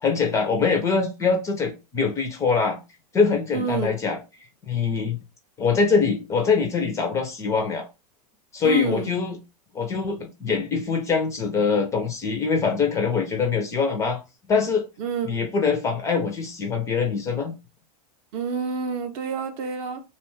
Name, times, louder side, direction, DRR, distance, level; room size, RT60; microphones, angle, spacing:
voice 1, 0.0-2.8 3.1-4.2 4.7-5.2 5.6-7.9 8.5-9.4 9.7-14.2 14.5-14.9 15.2-17.5, left 5 dB, 15° left, 0.4 m, -23 dB
voice 2, 3.5-3.9 8.6-9.1 15.0-15.5 18.3-20.0, right 5 dB, 40° right, 0.5 m, -28 dB
2.7 x 2.2 x 3.0 m
supercardioid pair, 150°, 20 cm